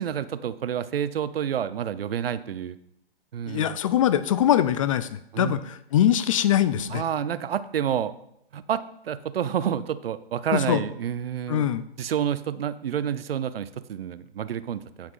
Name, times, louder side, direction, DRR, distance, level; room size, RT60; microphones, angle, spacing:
voice 1, 0.0-2.8 3.3-3.7 5.3-5.6 6.9-8.1 8.5-11.7 12.0-15.1, right 9 dB, 70° right, 14 dB, 0.6 m, -29 dB
voice 2, 3.5-7.0 10.5-10.8 11.5-11.8, left 10 dB, 35° left, 15 dB, 0.4 m, -23 dB
15.5 x 5.9 x 2.5 m, 0.76 s
hypercardioid pair, 130°, 30 cm